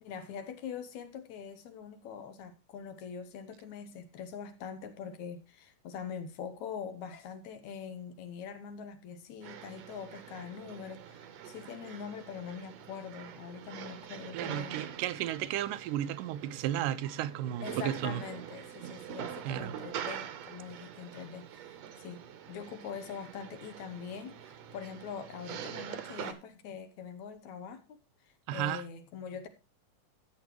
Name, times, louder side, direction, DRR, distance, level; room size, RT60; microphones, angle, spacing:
voice 1, 0.0-14.8 17.6-28.0 28.2-29.5, left 7 dB, 70° left, 2.1 m, -43 dB
sound 1, 9.4-26.3, right 9 dB, 65° right, 1.9 m, -44 dB
voice 2, 14.3-18.2 19.5-19.7 28.5-28.8, right 12 dB, 85° right, 2.2 m, -33 dB
14.0 x 8.4 x 3.1 m
omnidirectional pair, 3.8 m